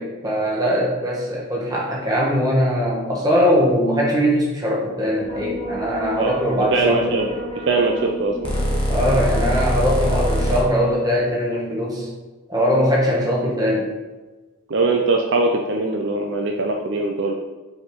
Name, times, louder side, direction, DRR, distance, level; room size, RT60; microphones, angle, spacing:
voice 1, 0.0-7.1 8.9-12.1 12.5-13.9, equal, 15° right, -4 dB, 1.3 m, -21 dB
sound 1, 5.2-10.6, equal, 25° left, 1.1 m, -25 dB
voice 2, 6.7-7.3 7.7-8.5 14.7-17.3, right 3 dB, 55° right, 1 dB, 0.5 m, -21 dB
5.2 x 4.4 x 4.6 m, 1.2 s
head